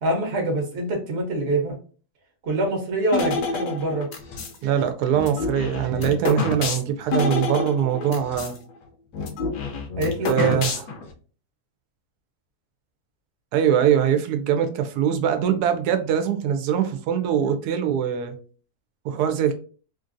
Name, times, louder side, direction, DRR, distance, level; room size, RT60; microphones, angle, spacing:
voice 1, 0.0-1.8 2.4-4.1 10.0-10.6, right 1 dB, 50° right, 1 dB, 1.0 m, -25 dB
sound 1, 3.1-4.6 5.1-8.6 8.8-8.9 9.1-11.1, left 4 dB, 80° left, 1.1 m, -28 dB
voice 2, 4.6-8.6 10.3-10.8 13.5-18.3 19.0-19.6, right 9 dB, 90° right, 7 dB, 1.1 m, -22 dB
3.2 x 2.5 x 2.5 m, 0.39 s
omnidirectional pair, 1.6 m